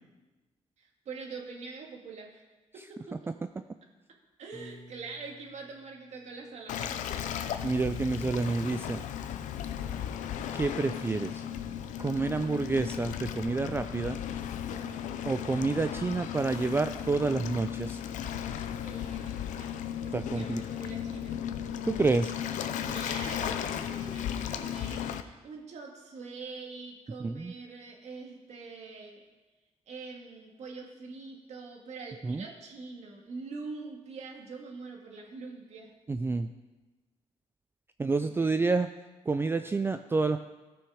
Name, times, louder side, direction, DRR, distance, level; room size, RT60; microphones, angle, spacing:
voice 1, 0.8-2.4 2.7-3.2 4.4-7.0 12.2-12.5 14.7-15.1 18.7-21.4 22.9-29.2 29.9-35.9 38.1-38.7, right 4 dB, 65° right, 1 dB, 2.0 m, -44 dB
Piano, 4.5-6.7, left 1 dB, 35° left, 2.1 m, -53 dB
Waves surf, 6.7-25.2, left 9 dB, 85° left, 0.6 m, -35 dB
voice 2, 7.6-9.0 10.5-11.4 12.0-14.2 15.3-18.0 20.1-20.6 21.8-22.3 27.2-27.5 32.2-32.5 36.1-36.5 38.0-38.9 39.3-40.4, right 3 dB, 20° right, 9 dB, 0.4 m, -28 dB
14.5 x 6.1 x 4.8 m, 1.2 s
cardioid pair, 100°, 12 cm